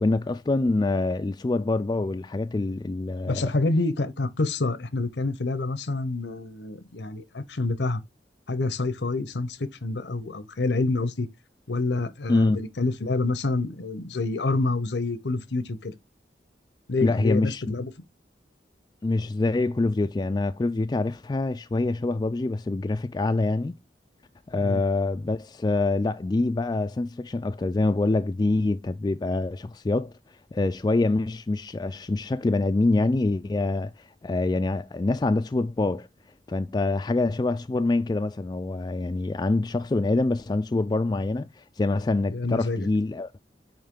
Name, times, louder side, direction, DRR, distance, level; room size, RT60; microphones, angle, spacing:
voice 1, 0.0-3.4 12.3-12.6 17.0-17.7 19.0-23.8 24.5-30.1 30.5-33.9 34.2-36.1 36.5-43.3, left 2 dB, 25° left, 0.3 m, -25 dB
voice 2, 3.3-8.0 8.5-11.3 11.7-16.0 16.9-17.9 24.6-24.8 42.3-42.9, left 3 dB, 80° left, 0.8 m, -27 dB
8.6 x 3.2 x 3.7 m
head